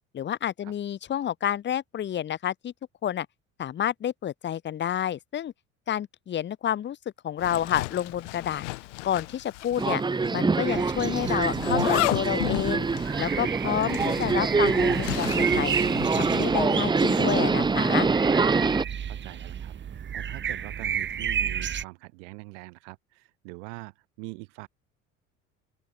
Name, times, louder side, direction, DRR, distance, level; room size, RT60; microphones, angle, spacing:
voice 1, 0.1-2.7 3.0-3.3 3.6-5.5 5.9-7.0 7.2-8.6 9.0-10.0 10.3-12.9 13.2-15.7 16.1-18.1, left 10 dB, 30° left, 0.8 m, -29 dB
Zipper (clothing), 7.4-10.0 10.2-10.3 11.2-16.1, left 22 dB, 65° left, 0.9 m, -33 dB
Subway metro underground, 9.8-18.8, right 4 dB, 10° right, 0.8 m, -25 dB
sound 1, 10.7-21.8, right 8 dB, 30° right, 1.2 m, -33 dB
voice 2, 19.1-24.7, right 33 dB, 65° right, 7.3 m, -43 dB
open air
figure-of-eight pair, 60°, 39 cm